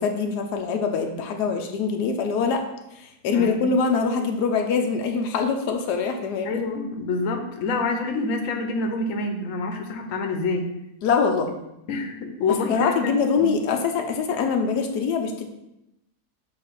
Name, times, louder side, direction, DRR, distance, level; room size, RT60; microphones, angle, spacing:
voice 1, 0.0-2.6 3.0-6.6 11.0-11.5 12.5-15.5, left 5 dB, 85° left, 4 dB, 1.2 m, -24 dB
voice 2, 3.3-3.7 6.4-10.6 11.9-13.5, left 3 dB, 60° left, 5 dB, 1.1 m, -27 dB
7.4 x 2.8 x 4.6 m, 0.87 s
omnidirectional pair, 1.7 m